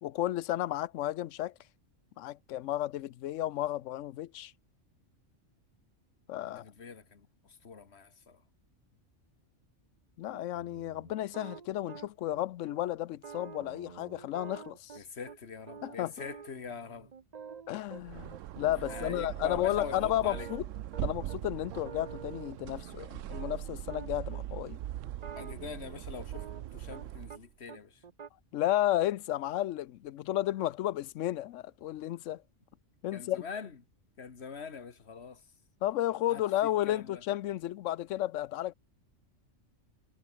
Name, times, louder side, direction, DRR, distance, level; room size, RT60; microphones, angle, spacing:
voice 1, 0.0-1.5 2.2-4.5 6.3-6.6 10.2-15.0 15.8-16.3 17.7-20.6 21.0-24.8 28.5-32.4 33.0-33.4 35.8-38.7, left 13 dB, 80° left, 0.9 m, -33 dB
voice 2, 6.4-7.3 7.6-8.4 15.0-17.1 18.9-20.5 25.4-28.0 33.1-33.7 34.2-35.4 36.3-37.2, left 5 dB, 60° left, 2.0 m, -43 dB
sound 1, 10.3-12.4 12.7-12.8 13.1-15.4 15.7-18.0 18.3-18.4 18.7-19.3 19.6-21.4 21.7-24.4 25.1-27.4 27.7-28.3, right 6 dB, 40° right, 0.8 m, -48 dB
sound 2, 17.9-27.4, right 13 dB, 85° right, 1.0 m, -41 dB
omnidirectional pair, 1.3 m